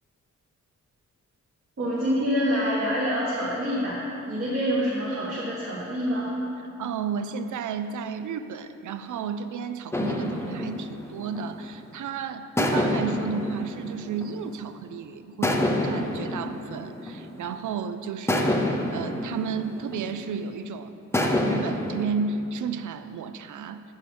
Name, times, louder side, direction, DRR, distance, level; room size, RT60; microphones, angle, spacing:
voice 1, 1.8-4.0 4.3-6.4, equal, 50° right, -10 dB, 1.6 m, -26 dB
voice 2, 6.8-18.6 18.9-23.8, right 6 dB, 80° right, 11 dB, 0.5 m, -33 dB
sound 1, 9.9-12.0 12.6-14.8 15.4-17.7 18.3-20.5 21.1-22.1, left 1 dB, 10° left, 0.5 m, -28 dB
7.0 x 6.4 x 7.0 m, 2.8 s
wide cardioid pair, 165°, 30 cm